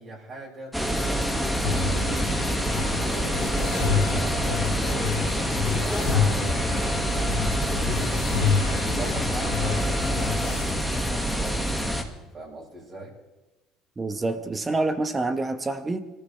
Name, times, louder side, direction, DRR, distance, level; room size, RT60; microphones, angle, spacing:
voice 1, 0.0-2.4 3.0-7.0 7.7-11.7 12.3-13.1, right 2 dB, 40° right, -4 dB, 6.2 m, -39 dB
sound 1, 0.7-12.0, equal, 5° right, 2.3 m, -26 dB
sound 2, 1.6-10.7, left 6 dB, 90° left, 1.8 m, -29 dB
voice 2, 14.0-16.0, right 2 dB, 25° right, 9 dB, 1.6 m, -27 dB
25.0 x 14.5 x 3.6 m, 1.1 s
hypercardioid pair, 65°, 0 cm